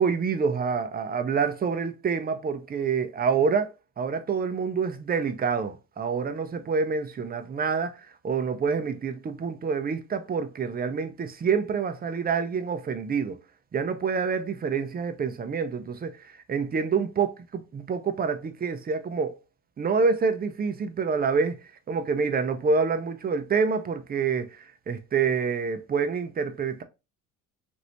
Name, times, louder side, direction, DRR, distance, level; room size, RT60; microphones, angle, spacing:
voice 1, 0.0-3.7 4.0-13.4 13.7-19.4 19.8-21.6 21.9-26.8, right 5 dB, 25° right, 0.5 m, -27 dB
3.0 x 2.6 x 2.7 m
hypercardioid pair, 65°, 37 cm